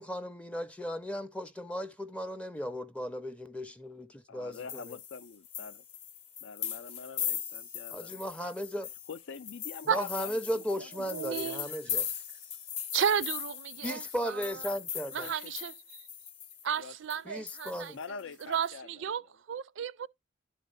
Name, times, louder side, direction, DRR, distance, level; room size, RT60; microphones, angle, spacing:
voice 1, 0.0-4.8 7.9-8.9 9.9-12.1 13.8-15.3 17.3-18.0, equal, 5° left, 0.4 m, -36 dB
voice 2, 4.3-5.8 6.4-8.2 9.1-10.5 10.7-11.6 15.1-15.6 16.8-16.9 17.9-19.3, left 5 dB, 75° left, 0.5 m, -45 dB
sound 1, 4.5-16.8 17.1-17.2 17.5-18.7, left 8 dB, 35° left, 0.8 m, -39 dB
voice 3, 11.1-11.7 12.9-14.5 15.1-15.7 16.6-17.9 18.5-19.2 19.5-20.1, right 8 dB, 70° right, 0.4 m, -33 dB
11.5 x 4.2 x 3.6 m
head